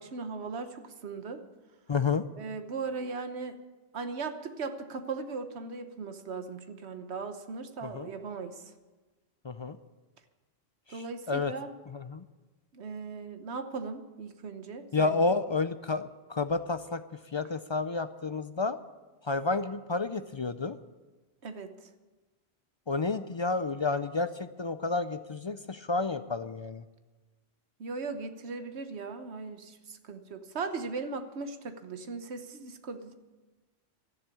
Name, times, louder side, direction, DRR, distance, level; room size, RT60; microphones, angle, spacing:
voice 1, 0.0-1.4 2.4-3.6 3.9-8.7 10.9-11.7 12.7-15.2 21.4-21.9 27.8-33.1, right 4 dB, 85° right, 8 dB, 1.3 m, -38 dB
voice 2, 1.9-2.2 7.8-8.1 9.4-9.8 10.9-11.5 11.9-12.2 14.9-17.0 17.3-18.8 19.3-20.8 22.9-26.8, left 3 dB, 45° left, 12 dB, 0.4 m, -30 dB
13.0 x 11.0 x 8.3 m, 1.2 s
omnidirectional pair, 1.1 m